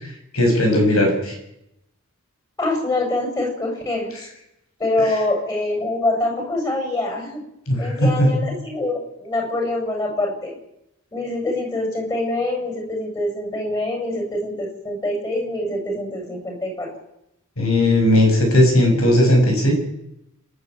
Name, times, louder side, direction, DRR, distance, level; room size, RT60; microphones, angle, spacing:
voice 1, 0.3-1.3 7.7-8.3 17.6-19.7, left 1 dB, 75° left, 4 dB, 6.5 m, -17 dB
voice 2, 2.6-4.1 4.8-7.4 7.8-10.6 11.1-16.9, left 2 dB, 20° left, 1 dB, 7.8 m, -25 dB
26.5 x 11.5 x 9.2 m, 0.83 s
head